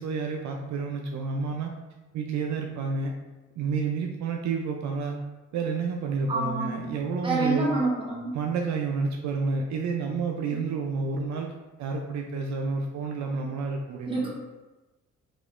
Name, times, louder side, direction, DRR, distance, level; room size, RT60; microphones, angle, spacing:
voice 1, 0.0-1.7 2.1-3.1 3.6-5.2 5.5-7.7 8.3-11.5 11.8-14.2, right 4 dB, 70° right, 2 dB, 0.4 m, -30 dB
voice 2, 6.3-6.9 7.2-8.3 14.0-14.3, right 2 dB, 15° right, -5 dB, 1.2 m, -27 dB
3.6 x 2.9 x 2.5 m, 1.1 s
cardioid pair, 90°, 30 cm